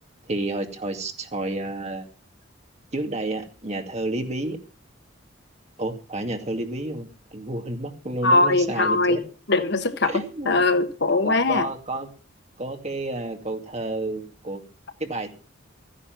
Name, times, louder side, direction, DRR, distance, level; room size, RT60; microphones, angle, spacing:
voice 1, 0.3-2.1 2.9-4.6 5.8-9.2 10.0-10.6 11.2-12.1 12.6-14.6 15.0-15.3, right 2 dB, 35° right, 2.2 m, -30 dB
voice 2, 8.2-9.2 9.5-10.1 10.5-11.7, left 2 dB, 60° left, 1.3 m, -21 dB
14.5 x 10.0 x 5.9 m
head